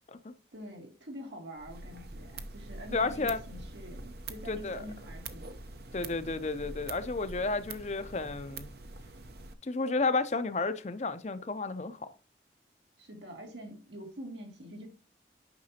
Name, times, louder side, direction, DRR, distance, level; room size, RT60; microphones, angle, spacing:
voice 1, 0.5-5.5 6.3-6.5 13.0-14.9, equal, 85° right, 2.6 m, -46 dB
sound 1, 1.6-9.5, right 3 dB, 60° right, 0.8 m, -45 dB
voice 2, 2.9-3.4 4.5-4.8 5.9-8.7 9.6-12.1, left 3 dB, 40° left, 0.6 m, -32 dB
9.5 x 5.9 x 2.8 m
head